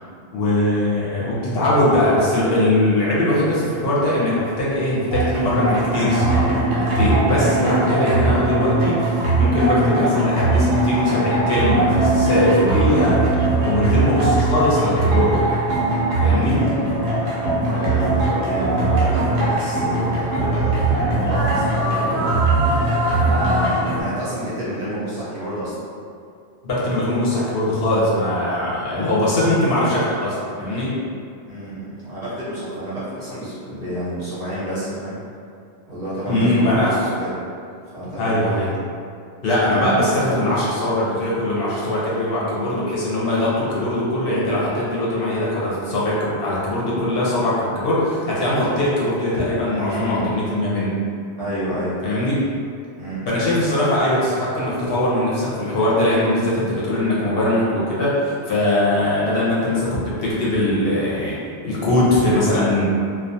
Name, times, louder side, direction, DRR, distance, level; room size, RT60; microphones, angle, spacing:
voice 1, 0.3-15.4 16.2-16.6 26.7-30.9 36.3-36.9 38.2-38.7 39.4-51.0 52.0-52.5 53.3-61.4 61.6-62.9, left 1 dB, 65° left, -7 dB, 0.8 m, -21 dB
sound 1, 5.1-24.0, right 2 dB, 75° right, 0.9 m, -20 dB
voice 2, 16.3-16.9 17.6-22.2 23.3-25.8 28.9-29.2 31.5-35.2 35.9-37.3 37.9-38.7 39.6-40.0 49.7-50.3 51.4-52.0 53.0-53.2, equal, 45° right, -11 dB, 0.7 m, -29 dB
2.3 x 2.2 x 2.6 m, 2.3 s
omnidirectional pair, 1.1 m